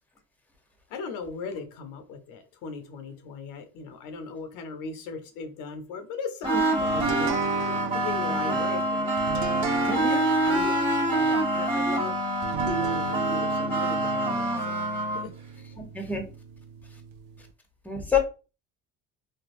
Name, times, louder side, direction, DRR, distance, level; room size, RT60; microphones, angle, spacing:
voice 1, 0.9-9.1 10.4-12.2 12.6-14.9 15.1-15.8, left 5 dB, 75° left, 0.8 m, -38 dB
sound 1, 6.4-15.3, right 1 dB, 15° right, 1.4 m, -26 dB
sound 2, 6.9-17.5, right 10 dB, 65° right, 0.5 m, -36 dB
voice 2, 9.9-10.2 15.9-16.2 17.8-18.2, left 6 dB, 5° left, 0.9 m, -27 dB
3.3 x 2.2 x 2.6 m
supercardioid pair, 90°, 34 cm